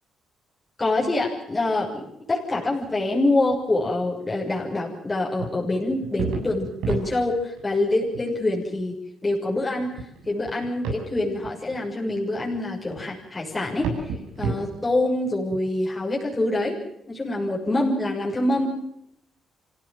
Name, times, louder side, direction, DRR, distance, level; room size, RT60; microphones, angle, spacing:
voice 1, 0.8-16.8 17.1-18.7, left 2 dB, 20° left, -4 dB, 6.5 m, -25 dB
sound 1, 5.4-7.7 8.0-8.2 8.8-8.9 9.6-11.1 11.4-15.6, right 4 dB, 90° right, 8.0 m, -32 dB
26.5 x 16.5 x 7.8 m, 0.80 s
cardioid pair, 90°, 0 cm